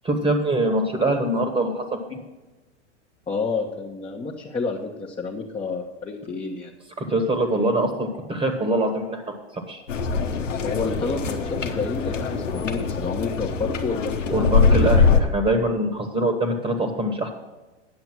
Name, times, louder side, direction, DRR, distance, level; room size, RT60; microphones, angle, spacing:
voice 1, 0.0-1.8 2.1-2.2 7.0-9.8 14.3-17.3, right 1 dB, 15° right, 5 dB, 1.4 m, -23 dB
voice 2, 3.3-6.7 10.6-14.4, left 4 dB, 15° left, -2 dB, 1.0 m, -29 dB
sound 1, 9.9-15.2, left 5 dB, 90° left, 1.1 m, -22 dB
9.7 x 6.9 x 6.1 m, 1.2 s
hypercardioid pair, 105°, 36 cm